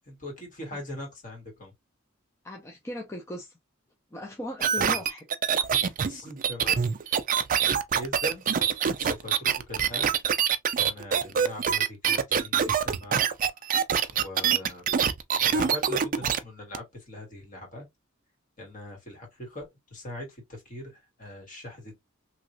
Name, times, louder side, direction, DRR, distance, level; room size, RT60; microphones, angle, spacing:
voice 1, 0.1-1.7 4.8-5.0 6.0-6.9 7.9-8.4 9.0-10.1 10.8-13.2 14.1-15.0 15.4-17.8 18.6-21.9, left 1 dB, 40° left, 1.8 m, -41 dB
voice 2, 2.4-3.5 4.1-5.2, left 1 dB, 15° left, 0.5 m, -38 dB
sound 1, 4.6-16.4 16.7-16.8, right 7 dB, 40° right, 0.4 m, -25 dB
3.0 x 2.9 x 2.6 m
head